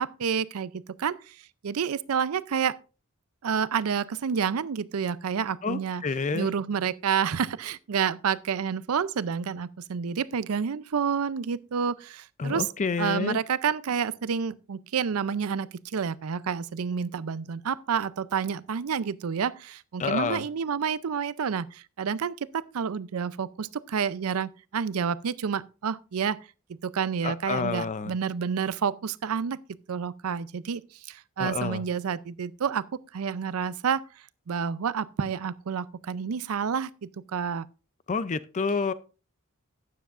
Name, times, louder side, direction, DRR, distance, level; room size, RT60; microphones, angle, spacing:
voice 1, 0.0-2.8 3.4-6.0 6.3-12.7 13.0-26.4 26.8-29.6 29.9-32.9 33.1-34.0 34.5-37.7, right 7 dB, 85° right, 0.5 m, -29 dB
voice 2, 5.6-6.5 12.4-13.4 20.0-20.5 27.2-28.2 31.4-31.8 38.1-38.9, left 4 dB, 35° left, 0.5 m, -29 dB
12.5 x 9.5 x 2.5 m
head